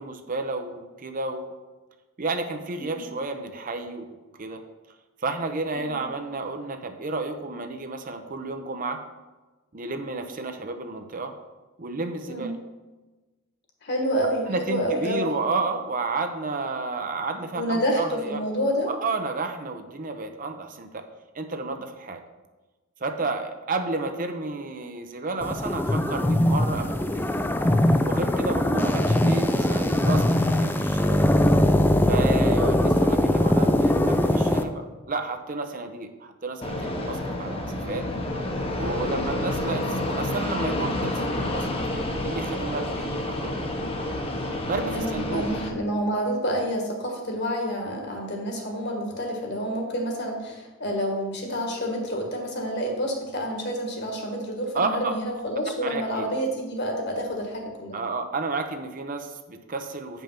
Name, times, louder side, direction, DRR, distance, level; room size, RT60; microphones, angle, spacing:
voice 1, 0.0-1.5 2.2-4.6 5.2-9.0 9.7-11.3 11.8-12.6 14.5-18.4 18.9-21.1 21.3-22.2 23.0-27.4 28.0-31.3 32.1-38.1 38.7-41.7 41.9-43.5 44.7-45.5 54.7-55.2 55.8-56.3 57.9-60.2, right 3 dB, 40° right, 6 dB, 0.7 m, -31 dB
voice 2, 2.8-3.1 5.7-6.0 12.3-12.6 13.8-15.3 17.5-18.9 28.5-28.9 39.0-39.3 44.9-58.0, equal, 50° left, 2 dB, 1.8 m, -28 dB
sound 1, 25.4-34.6, left 1 dB, 10° left, 0.4 m, -21 dB
Fixed-wing aircraft airplane, 36.6-45.7, left 1 dB, 25° left, 0.9 m, -29 dB
8.8 x 5.4 x 5.8 m, 1.2 s
head